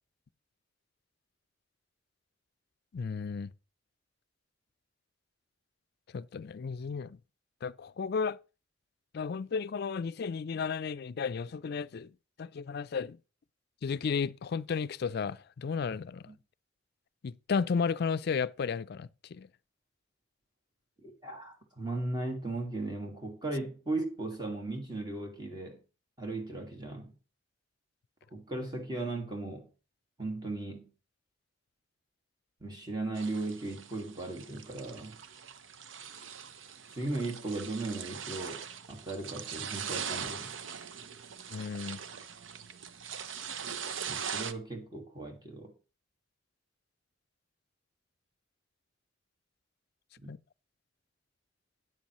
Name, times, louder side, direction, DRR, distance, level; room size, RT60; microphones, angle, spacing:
voice 1, 2.9-3.5 6.1-7.2 7.6-8.4 9.1-12.1 12.4-13.2 13.8-16.3 17.2-19.5 41.5-42.0 50.3-50.4, left 5 dB, 55° left, 0.4 m, -33 dB
voice 2, 21.0-25.8 26.2-27.1 28.3-29.7 30.2-30.9 32.6-35.2 36.9-40.5 44.1-45.7 50.2-50.3, right 2 dB, 20° right, 1.8 m, -37 dB
sound 1, 33.2-44.5, right 7 dB, 85° right, 0.8 m, -41 dB
12.5 x 9.3 x 3.0 m
head